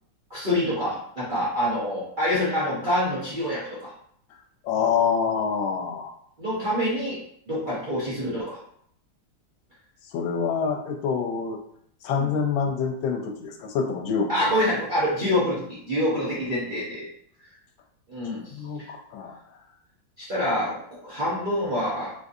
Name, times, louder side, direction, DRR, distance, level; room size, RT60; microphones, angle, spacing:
voice 1, 0.3-3.9 6.4-7.2 7.5-8.6 12.2-12.3 14.3-17.1 18.1-18.9 20.2-20.8 21.0-22.1, left 1 dB, 60° right, -8 dB, 0.5 m, -26 dB
voice 2, 4.6-6.1 10.1-11.6 12.0-14.3 18.3-19.4, left 6 dB, 85° left, 4 dB, 1.3 m, -26 dB
3.7 x 2.6 x 2.6 m, 0.67 s
omnidirectional pair, 2.1 m